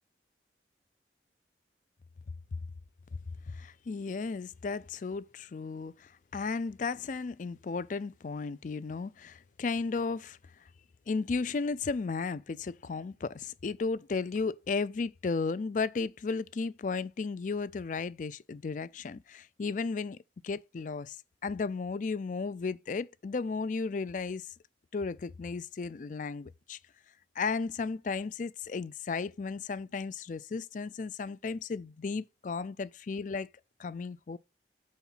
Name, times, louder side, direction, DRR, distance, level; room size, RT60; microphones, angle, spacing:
voice 1, 3.5-10.4 11.1-20.2 20.4-21.2 21.4-24.5 24.9-26.8 27.4-33.5 33.8-34.4, left 4 dB, 45° left, 0.4 m, -34 dB
5.8 x 4.3 x 5.5 m
head